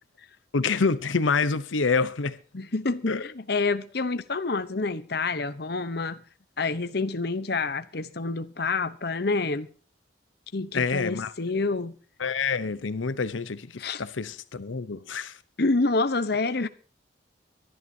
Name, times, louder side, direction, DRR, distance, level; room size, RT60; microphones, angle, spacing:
voice 1, 0.5-2.4 3.1-3.2 10.7-11.3 12.2-15.4, left 4 dB, 85° left, 0.8 m, -27 dB
voice 2, 2.5-6.2 6.6-9.7 10.5-12.0 13.8-14.0 15.6-16.7, left 3 dB, 55° left, 0.9 m, -27 dB
23.5 x 11.5 x 2.8 m
head